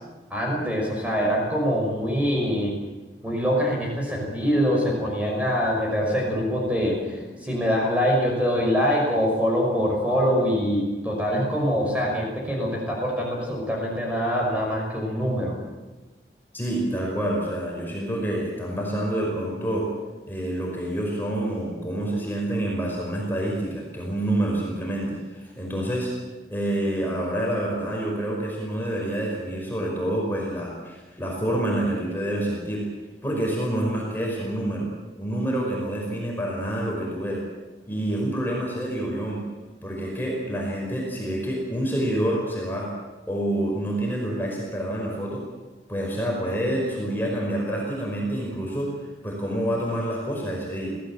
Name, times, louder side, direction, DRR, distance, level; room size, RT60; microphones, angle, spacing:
voice 1, 0.3-2.8 3.2-15.6, equal, 10° right, -1 dB, 5.8 m, -24 dB
voice 2, 16.5-19.9 20.3-26.1 26.5-32.9 33.2-34.9 35.2-37.4 37.9-39.4 39.8-42.9 43.3-45.4 45.9-48.9 49.2-50.9, right 1 dB, 10° left, -2 dB, 5.4 m, -27 dB
26.5 x 17.0 x 7.6 m, 1.2 s
head